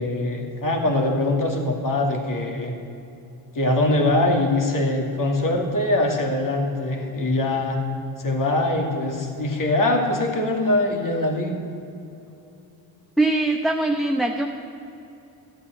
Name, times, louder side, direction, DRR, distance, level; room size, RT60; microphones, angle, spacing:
voice 1, 0.0-2.7 3.5-7.8 8.2-11.6, left 2 dB, 45° left, 3 dB, 2.4 m, -22 dB
voice 2, 13.2-14.5, right 2 dB, ahead, 2 dB, 0.8 m, -21 dB
12.5 x 8.6 x 7.8 m, 2.7 s
supercardioid pair, 70°, 45 cm